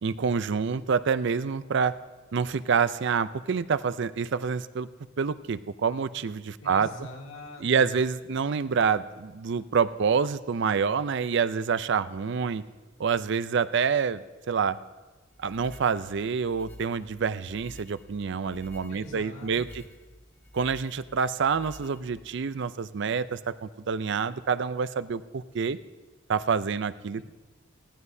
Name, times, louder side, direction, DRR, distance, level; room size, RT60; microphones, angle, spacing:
voice 1, 0.0-2.0 2.3-4.9 5.2-6.9 7.6-12.6 13.0-14.8 15.4-19.8 20.5-25.8 26.3-27.2, right 6 dB, 60° right, 14 dB, 0.5 m, -27 dB
voice 2, 6.6-8.0 18.9-19.6 27.2-27.3, left 1 dB, 85° left, 0 dB, 2.0 m, -43 dB
sound 1, 15.3-22.5, left 1 dB, 15° left, 1.6 m, -51 dB
19.5 x 16.0 x 2.7 m, 1.2 s
head